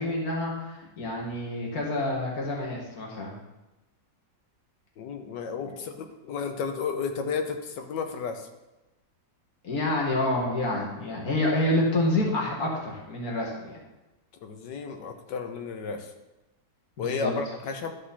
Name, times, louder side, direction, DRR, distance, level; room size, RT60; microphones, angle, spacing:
voice 1, 0.0-3.3 9.6-13.8 17.0-17.3, left 1 dB, 60° left, -2 dB, 2.3 m, -28 dB
voice 2, 5.0-8.5 14.4-16.1 17.0-17.9, left 5 dB, 85° left, 5 dB, 1.6 m, -33 dB
12.5 x 5.3 x 4.2 m, 1.0 s
omnidirectional pair, 1.8 m